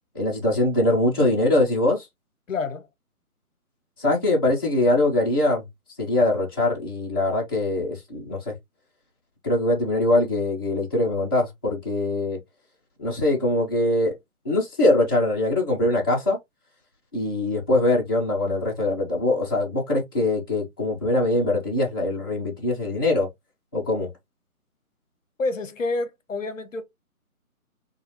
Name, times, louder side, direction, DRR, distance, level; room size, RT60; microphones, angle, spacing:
voice 1, 0.1-2.1 4.0-5.6 6.0-8.5 9.4-12.4 13.0-14.1 14.4-16.4 17.1-23.3 23.7-24.1, left 2 dB, 15° left, 0.6 m, -22 dB
voice 2, 2.5-2.9 25.4-26.8, left 3 dB, 60° left, 0.8 m, -28 dB
4.6 x 2.3 x 3.0 m
figure-of-eight pair, 150°, 44 cm